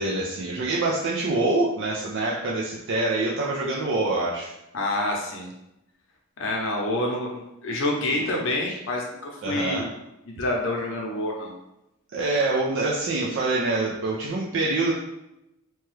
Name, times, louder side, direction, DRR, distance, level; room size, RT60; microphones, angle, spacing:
voice 1, 0.0-4.5 8.1-8.3 8.7-8.8 9.4-9.9 12.1-14.9, right 2 dB, 60° right, -4 dB, 0.4 m, -25 dB
voice 2, 4.7-5.5 6.4-9.9 10.3-11.5, left 1 dB, 65° left, -1 dB, 0.7 m, -27 dB
2.9 x 2.2 x 3.1 m, 0.89 s
head